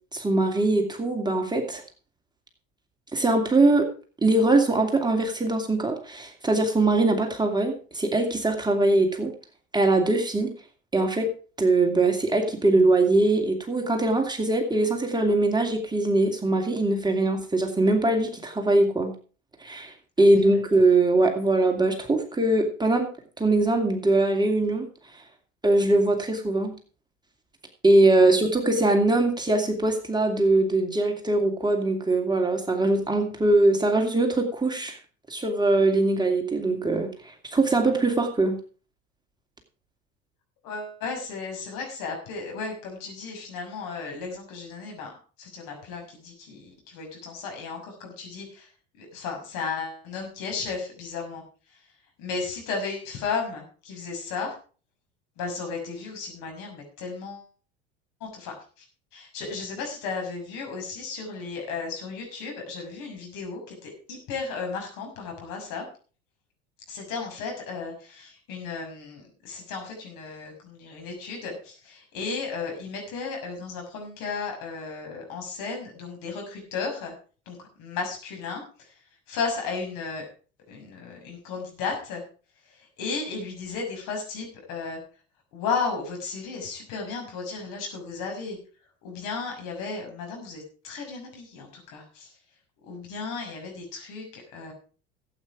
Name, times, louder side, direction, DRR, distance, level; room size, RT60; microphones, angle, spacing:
voice 1, 0.1-1.8 3.1-3.9 4.2-9.3 9.7-10.5 10.9-11.3 11.6-19.1 19.6-23.1 23.4-24.9 25.6-26.7 27.8-35.0 35.3-38.6, right 2 dB, 10° right, 2 dB, 2.6 m, -22 dB
voice 2, 40.6-45.1 45.4-48.7 49.0-51.4 51.7-51.8 52.2-54.5 55.4-57.5 58.2-58.8 59.1-65.9 66.9-77.1 77.5-78.9 79.3-80.3 80.7-82.2 82.7-85.0 85.5-88.6 89.0-92.3 92.8-94.7, left 4 dB, 60° left, 2 dB, 6.3 m, -34 dB
14.5 x 8.8 x 4.9 m, 0.39 s
hypercardioid pair, 70°, 37 cm